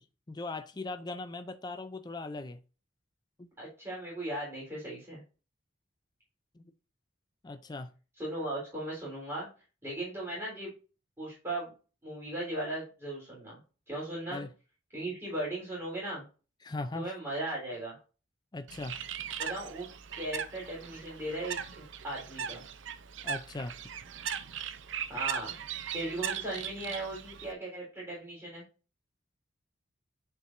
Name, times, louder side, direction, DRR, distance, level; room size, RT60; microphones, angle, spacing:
voice 1, 0.3-2.6 3.4-3.5 6.6-6.7 7.4-7.9 14.3-14.5 16.6-17.1 18.5-19.0 23.2-23.8, left 2 dB, 20° left, 0.4 m, -39 dB
voice 2, 3.6-5.2 8.2-9.5 9.8-10.7 11.2-11.7 12.0-13.6 13.9-14.4 14.9-16.2 16.9-18.0 19.4-19.9 20.1-22.6 25.1-25.5 25.9-28.6, right 1 dB, 15° right, 3.8 m, -37 dB
Bird, 18.7-27.5, right 8 dB, 70° right, 0.6 m, -39 dB
10.0 x 4.7 x 2.6 m
head